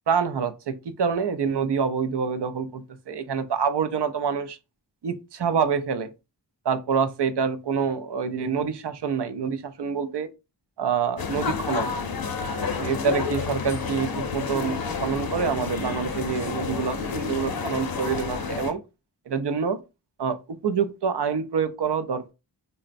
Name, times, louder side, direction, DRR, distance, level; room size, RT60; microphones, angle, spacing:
voice 1, 0.1-4.6 5.0-6.1 6.6-10.3 10.8-11.9 12.6-18.8 19.3-19.8 20.2-22.3, right 6 dB, 70° right, 0.6 m, -26 dB
sound 1, 11.2-18.7, left 5 dB, 55° left, 0.6 m, -30 dB
4.0 x 2.1 x 2.5 m
wide cardioid pair, 60°, 43 cm